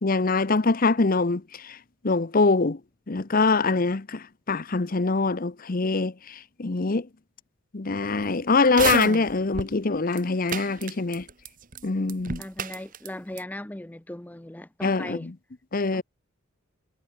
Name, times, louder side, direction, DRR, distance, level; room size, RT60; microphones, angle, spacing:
voice 1, 0.0-1.8 2.0-2.8 3.1-7.1 7.7-11.3 11.8-12.4 14.8-15.3 15.7-16.0, left 3 dB, 40° left, 0.7 m, -24 dB
sound 1, 8.6-9.7 10.1-10.2 10.5-11.5 11.7-11.8 12.1-13.1 13.4-13.5, right 5 dB, 40° right, 1.3 m, -29 dB
voice 2, 12.4-15.3 15.9-16.0, left 1 dB, 5° left, 0.5 m, -38 dB
head